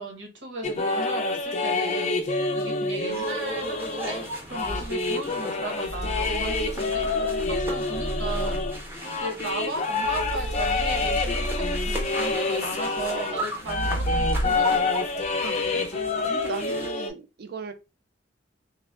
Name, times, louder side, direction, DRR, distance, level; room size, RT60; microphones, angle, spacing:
voice 1, 0.0-8.8 9.2-15.0, right 2 dB, 75° right, 0.8 m, -36 dB
sound 1, 0.6-13.4 13.7-17.1, left 3 dB, 35° left, 0.4 m, -27 dB
sound 2, 3.1-16.9, right 1 dB, 10° right, 0.6 m, -38 dB
sound 3, 4.6-4.9 5.8-8.8 10.0-12.3 13.7-14.8, right 1 dB, 90° left, 0.6 m, -31 dB
voice 2, 15.4-15.9 16.2-17.7, right 5 dB, 55° right, 0.4 m, -37 dB
3.4 x 2.0 x 2.2 m
head